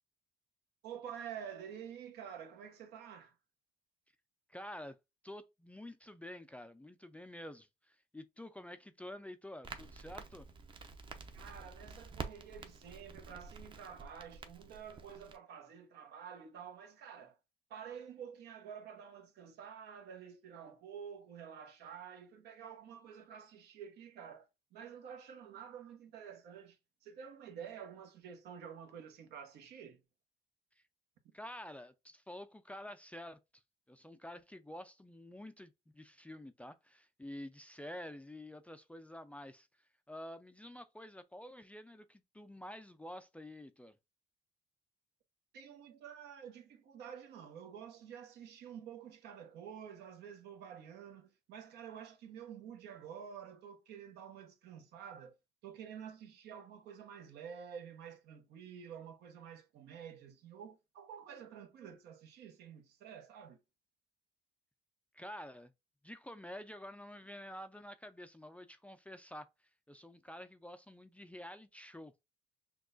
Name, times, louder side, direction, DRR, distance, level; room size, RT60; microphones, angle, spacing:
voice 1, 0.8-3.4 11.3-17.4 17.7-30.0 45.5-55.4 55.6-63.6, right 8 dB, 75° right, 1.0 m, -49 dB
voice 2, 4.5-5.0 5.2-10.5 31.3-33.6 33.9-39.7 40.1-44.0 65.1-65.7 66.0-69.5 69.9-72.1, left 1 dB, 10° left, 0.3 m, -49 dB
Crackle, 9.6-15.4, right 4 dB, 30° right, 0.6 m, -49 dB
6.0 x 2.3 x 2.4 m
cardioid pair, 110°, 17 cm